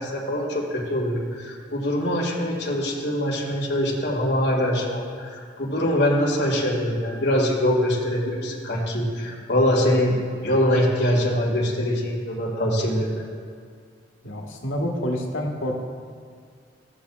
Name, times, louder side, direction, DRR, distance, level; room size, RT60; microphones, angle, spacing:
voice 1, 0.0-10.1 10.4-13.2, equal, 60° left, -4 dB, 2.0 m, -23 dB
voice 2, 14.2-15.8, equal, 90° left, 0 dB, 1.4 m, -28 dB
16.0 x 7.0 x 2.4 m, 2.1 s
head